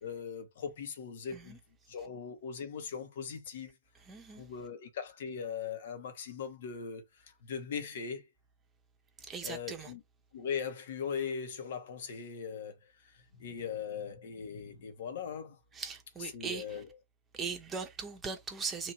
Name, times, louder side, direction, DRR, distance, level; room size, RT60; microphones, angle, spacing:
voice 1, 0.0-1.6 1.9-3.7 4.4-8.2 9.4-10.0 10.3-15.6 16.2-16.9, left 6 dB, 55° left, 1.1 m, -40 dB
voice 2, 4.0-4.4 9.3-9.9 15.7-16.8 17.3-18.9, right 5 dB, 15° right, 0.9 m, -39 dB
3.1 x 2.7 x 4.3 m
figure-of-eight pair, 110°, 0 cm